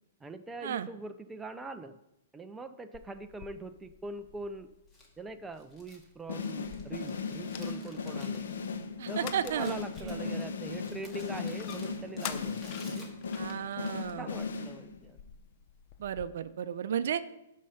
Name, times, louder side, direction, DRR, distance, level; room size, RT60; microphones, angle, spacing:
voice 1, 0.2-2.0 2.3-4.7 5.2-8.5 9.1-13.1 14.2-15.2, right 2 dB, 10° right, 7 dB, 0.5 m, -43 dB
sound 1, 2.9-16.3, left 9 dB, 40° left, 0.7 m, -49 dB
Crumpling crinkling, 4.9-13.5, left 1 dB, 15° left, 2.1 m, -54 dB
sound 2, 6.3-15.1, left 5 dB, 80° left, 1.1 m, -37 dB
voice 2, 9.0-9.8 10.0-10.4 13.3-14.3 16.0-17.2, right 9 dB, 65° right, 13 dB, 0.6 m, -33 dB
11.5 x 5.6 x 5.7 m, 0.87 s
hypercardioid pair, 145°, 0 cm